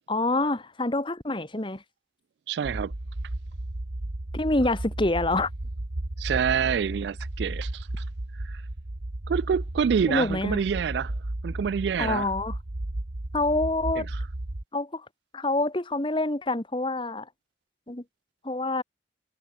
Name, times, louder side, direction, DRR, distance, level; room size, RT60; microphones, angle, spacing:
voice 1, 0.1-1.8 4.3-5.5 10.1-10.6 12.0-12.5 13.3-14.1 14.7-15.0 15.3-17.2 17.9-18.0 18.4-18.8, left 2 dB, 25° left, 1.4 m, -26 dB
voice 2, 2.5-2.9 6.2-8.0 8.4-8.6 9.3-11.1 11.4-12.3 14.0-14.2, right 7 dB, 65° right, 0.3 m, -27 dB
sound 1, 2.6-14.6, right 1 dB, 85° right, 1.5 m, -34 dB
head